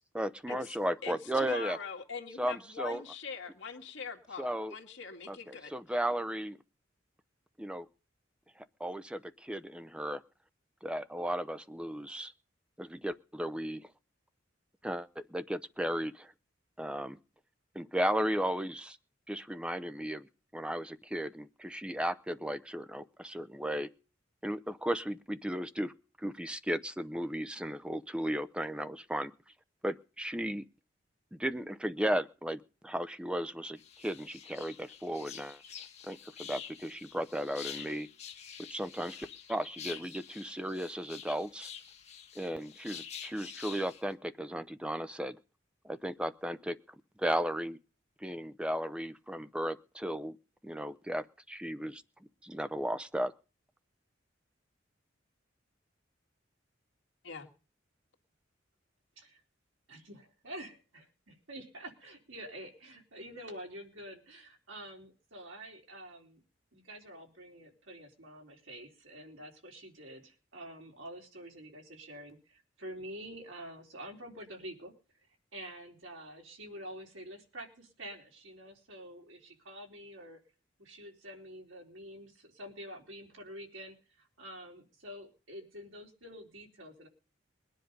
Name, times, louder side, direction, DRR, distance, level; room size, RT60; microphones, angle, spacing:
voice 1, 0.1-1.8 2.4-3.0 4.4-4.7 5.3-6.6 7.6-7.8 8.6-10.2 10.8-12.3 12.8-13.9 14.8-16.3 16.8-17.2 17.7-19.0 19.3-20.3 20.5-23.9 24.4-29.3 29.8-30.6 31.3-35.6 36.1-38.1 38.7-41.7 42.4-45.4 45.8-46.8 47.2-47.8 48.2-50.3 50.6-52.0 52.4-53.3, equal, 5° right, 12 dB, 0.6 m, -35 dB
voice 2, 1.0-5.7 57.3-57.5, left 5 dB, 65° left, 3 dB, 2.0 m, -42 dB
sound 1, 33.8-44.0, left 8 dB, 35° left, 1.9 m, -47 dB
voice 3, 59.9-66.4 66.7-74.9 75.5-80.4 80.8-87.1, right 1 dB, 85° right, 0 dB, 4.2 m, -47 dB
20.5 x 10.5 x 5.3 m, 0.36 s
head